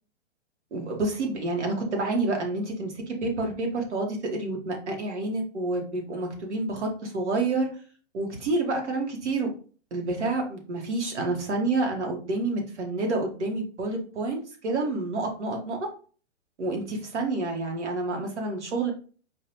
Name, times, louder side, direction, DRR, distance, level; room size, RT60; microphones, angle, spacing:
voice 1, 0.7-7.7 8.1-9.5 9.9-15.9 16.6-18.9, right 2 dB, 80° right, 2 dB, 1.3 m, -28 dB
4.6 x 2.3 x 2.9 m, 0.39 s
hypercardioid pair, 120°, 35 cm